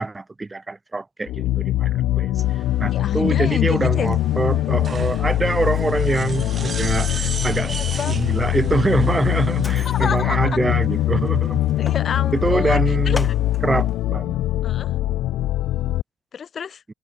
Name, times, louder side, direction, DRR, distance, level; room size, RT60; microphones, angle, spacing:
voice 1, 0.0-11.7 12.3-13.3 13.6-14.4, right 3 dB, 20° right, 6.5 m, -24 dB
sound 1, 1.3-16.0, left 15 dB, 85° left, 3.1 m, -22 dB
sound 2, 2.4-10.0, right 5 dB, 35° right, 3.2 m, -36 dB
voice 2, 2.9-4.2 7.7-8.2 9.8-10.5 11.8-12.8 13.1-13.3 14.6-14.9 16.3-16.8, left 7 dB, 45° left, 2.0 m, -28 dB
Mechanisms, 3.3-14.1, left 3 dB, 20° left, 7.6 m, -39 dB
open air
cardioid pair, 105°, 0 cm